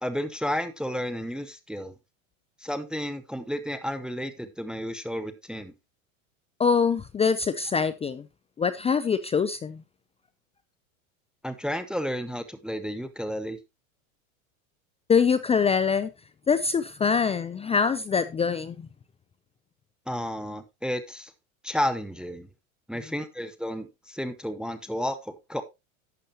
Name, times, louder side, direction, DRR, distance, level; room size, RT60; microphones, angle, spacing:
voice 1, 0.0-1.9 2.6-5.7 11.4-13.6 20.1-21.3 21.6-22.5 22.9-25.6, equal, ahead, 0.9 m, -32 dB
voice 2, 6.6-8.3 8.6-9.8 15.1-16.1 16.5-18.9, left 6 dB, 15° left, 0.5 m, -24 dB
11.5 x 8.4 x 2.9 m
hypercardioid pair, 105°, 42 cm